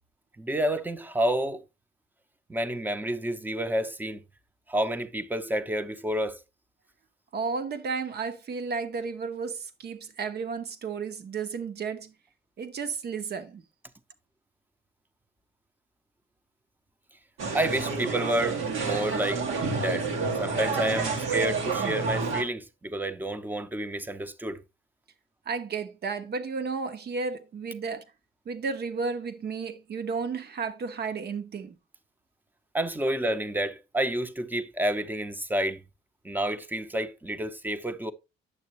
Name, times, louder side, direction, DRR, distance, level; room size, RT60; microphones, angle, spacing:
voice 1, 0.4-1.6 2.5-4.2 4.7-6.4 17.5-19.5 19.8-20.1 20.4-24.6 32.7-35.8 36.2-38.1, right 1 dB, 10° right, 0.7 m, -29 dB
voice 2, 7.3-12.1 12.6-13.6 25.5-28.0 28.5-31.8, right 5 dB, 55° right, 1.1 m, -33 dB
sound 1, 17.4-22.4, right 4 dB, 85° right, 1.8 m, -29 dB
9.4 x 6.7 x 3.0 m
cardioid pair, 90°, 20 cm